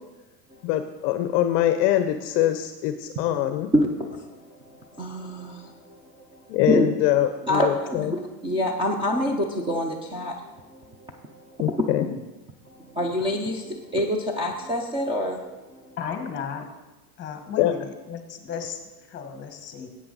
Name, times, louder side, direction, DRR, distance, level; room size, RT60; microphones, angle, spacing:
voice 1, 0.6-3.7 6.5-7.7 11.6-12.1 17.6-17.7, left 12 dB, 50° left, 9 dB, 0.6 m, -23 dB
voice 2, 3.7-6.9 7.2-11.8 12.7-16.0, left 1 dB, 10° right, 1 dB, 0.6 m, -27 dB
voice 3, 16.0-16.7 17.2-19.9, left 7 dB, 20° left, 6 dB, 1.3 m, -35 dB
10.5 x 8.4 x 4.0 m, 1.1 s
supercardioid pair, 140°, 48 cm